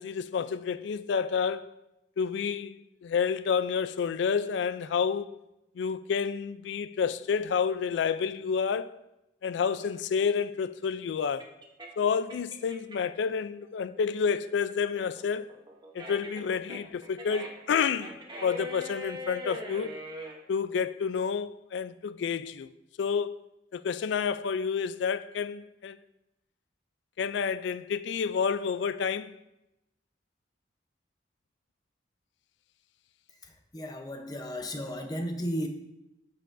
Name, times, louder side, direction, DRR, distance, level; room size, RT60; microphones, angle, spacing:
voice 1, 0.0-1.7 2.2-2.8 3.0-5.3 5.8-9.0 9.4-11.5 12.0-15.5 15.9-19.9 20.5-22.7 23.0-23.4 23.7-26.0 27.2-29.4, left 6 dB, 80° left, 0.3 m, -29 dB
sound 1, 9.8-13.2 13.6-20.4, equal, 25° right, 0.8 m, -42 dB
voice 2, 33.7-35.7, equal, 20° left, 0.6 m, -34 dB
9.7 x 6.8 x 2.5 m
head